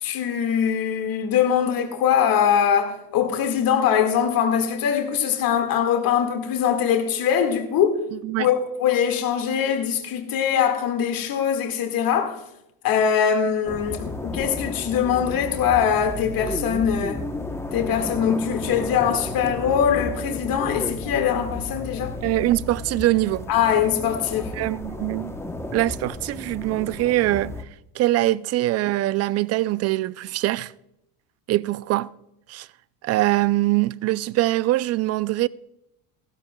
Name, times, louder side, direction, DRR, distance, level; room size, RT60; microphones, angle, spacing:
voice 1, 0.0-8.0 8.4-12.4 12.8-17.2 17.7-22.2 23.5-24.5, left 8 dB, 50° left, 1.9 m, -22 dB
voice 2, 8.1-8.5 22.2-23.5 24.6-25.4 25.7-27.6 27.9-30.7 31.5-32.1 32.5-32.7 33.0-35.5, right 16 dB, 35° right, 0.4 m, -23 dB
sound 1, 13.6-27.6, left 2 dB, 5° left, 0.9 m, -33 dB
15.5 x 13.0 x 2.3 m
supercardioid pair, 100°, 44 cm